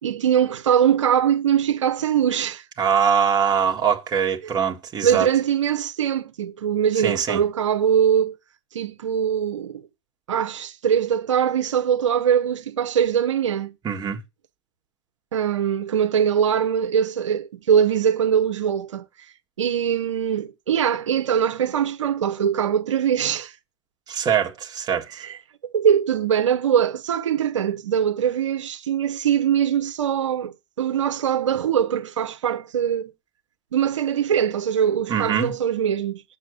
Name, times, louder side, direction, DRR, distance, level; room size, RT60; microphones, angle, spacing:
voice 1, 0.0-2.6 5.0-8.4 8.7-9.8 10.3-13.7 15.3-19.0 19.6-23.5 25.2-25.4 25.6-33.1 33.7-36.2, right 8 dB, 80° right, 1.1 m, -22 dB
voice 2, 2.8-5.3 7.0-7.4 13.8-14.2 24.1-25.2 35.1-35.5, right 7 dB, 25° right, 1.8 m, -22 dB
7.4 x 6.5 x 5.3 m
hypercardioid pair, 115°, 16 cm